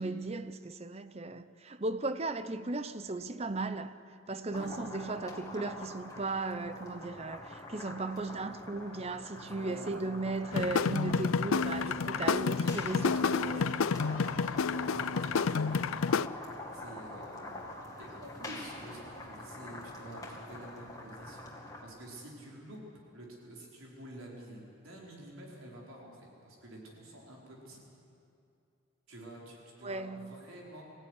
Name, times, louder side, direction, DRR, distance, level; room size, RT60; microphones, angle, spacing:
voice 1, 0.0-3.9 4.3-13.8 17.6-17.7 29.8-30.4, right 2 dB, 30° right, 0.7 m, -36 dB
sound 1, 4.5-21.8, left 1 dB, 15° left, 2.3 m, -45 dB
voice 2, 9.4-10.0 11.8-12.7 13.0-13.5 14.6-15.8 16.7-17.5 18.0-21.5 21.8-22.8 23.1-27.8 29.1-30.8, right 1 dB, 90° right, 4.9 m, -49 dB
sound 2, 10.5-16.3, left 5 dB, 85° left, 0.5 m, -30 dB
23.5 x 15.5 x 9.9 m
head